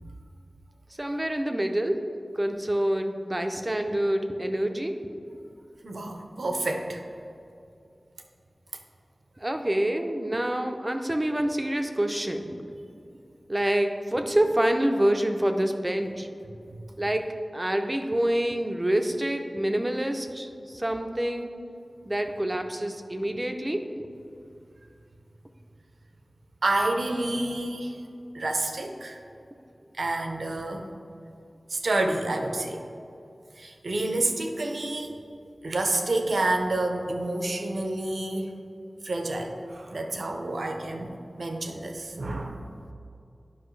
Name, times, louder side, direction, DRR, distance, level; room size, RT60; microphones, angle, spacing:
voice 1, 1.0-2.0 2.3-5.0 9.4-12.6 13.5-16.3 17.0-17.3 17.5-21.5 22.0-24.1, right 1 dB, 20° right, 5 dB, 0.6 m, -27 dB
voice 2, 5.8-7.0 16.7-16.8 26.6-28.0 28.3-29.2 30.0-30.9 31.7-32.8 33.6-35.2 35.6-38.5 39.0-42.6, right 2 dB, 80° right, 4 dB, 0.7 m, -29 dB
10.0 x 5.5 x 3.2 m, 2.6 s
wide cardioid pair, 75°, 0 cm